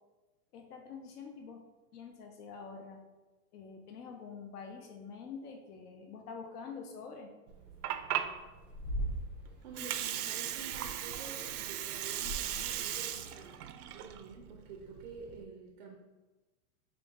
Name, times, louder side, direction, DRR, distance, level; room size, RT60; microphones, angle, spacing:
voice 1, 0.5-1.6 1.9-3.0 3.5-7.3, left 5 dB, 85° left, 3 dB, 0.8 m, -46 dB
Water, 7.5-15.4, right 11 dB, 85° right, 0.6 m, -38 dB
sound 1, 7.6-9.7 10.5-13.5, right 1 dB, 30° left, 0.5 m, -42 dB
voice 2, 9.6-13.5 13.9-16.0, right 4 dB, 35° right, 1 dB, 0.4 m, -49 dB
5.8 x 2.3 x 3.6 m, 1.2 s
supercardioid pair, 165°, 45 cm